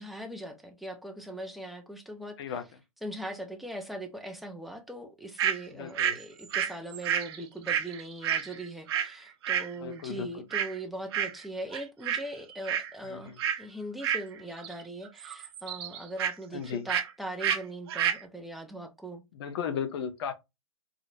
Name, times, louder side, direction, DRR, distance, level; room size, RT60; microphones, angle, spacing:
voice 1, 0.0-2.6 3.0-19.2, right 1 dB, ahead, 0.5 m, -40 dB
sound 1, 5.4-5.6 6.0-9.1 9.4-9.7 10.5-10.8 11.1-11.4 11.7-12.2 12.5-12.9 13.4-13.6 14.0-14.8 15.1-16.3 16.9-17.1 17.4-17.6 17.9-18.2, right 9 dB, 50° right, 0.6 m, -29 dB
voice 2, 5.8-6.2 9.8-10.4 13.0-13.4 16.5-16.9 19.3-20.3, left 7 dB, 50° left, 0.7 m, -35 dB
3.9 x 2.0 x 3.2 m
hypercardioid pair, 125°, 17 cm